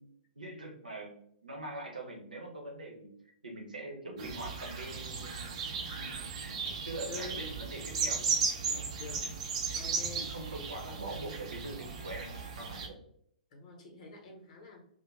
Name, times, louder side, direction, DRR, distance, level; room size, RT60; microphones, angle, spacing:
voice 1, 0.0-3.1 3.4-5.6 6.0-6.6 6.8-9.0 10.1-13.0, right 2 dB, 80° right, 1 dB, 0.8 m, -43 dB
sound 1, 4.2-12.9, right 5 dB, 50° right, 0.5 m, -36 dB
voice 2, 7.1-7.4 9.0-9.4 9.7-10.3 13.5-14.8, left 3 dB, 55° left, 1 dB, 0.9 m, -46 dB
2.4 x 2.1 x 3.1 m, 0.67 s
figure-of-eight pair, 110°, 4 cm